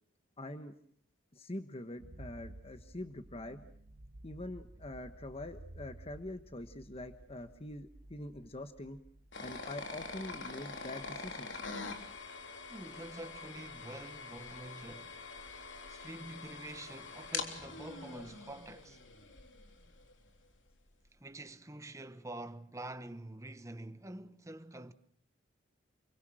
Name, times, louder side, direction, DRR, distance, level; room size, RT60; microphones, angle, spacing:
voice 1, 0.4-0.7 1.3-3.6 4.2-9.0 9.4-11.6, left 1 dB, 30° left, 1.3 m, -44 dB
sound 1, 2.0-12.1, right 1 dB, 65° right, 1.5 m, -55 dB
sound 2, 9.3-20.1, left 4 dB, 80° left, 3.5 m, -45 dB
voice 2, 12.7-15.2 15.9-19.0 21.1-24.9, right 1 dB, 15° right, 1.3 m, -47 dB
28.5 x 24.0 x 6.4 m
head